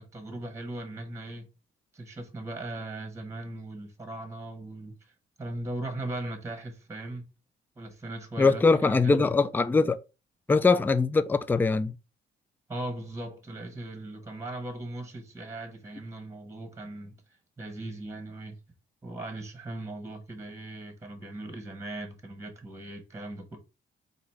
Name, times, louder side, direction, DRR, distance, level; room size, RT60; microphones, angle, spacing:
voice 1, 0.0-1.5 1.9-7.2 7.8-9.3 12.7-18.5 19.0-23.6, right 2 dB, 15° right, 1.1 m, -39 dB
voice 2, 8.4-10.0 10.5-11.9, left 4 dB, 10° left, 0.3 m, -22 dB
3.9 x 2.6 x 4.4 m
cardioid pair, 90°, 20 cm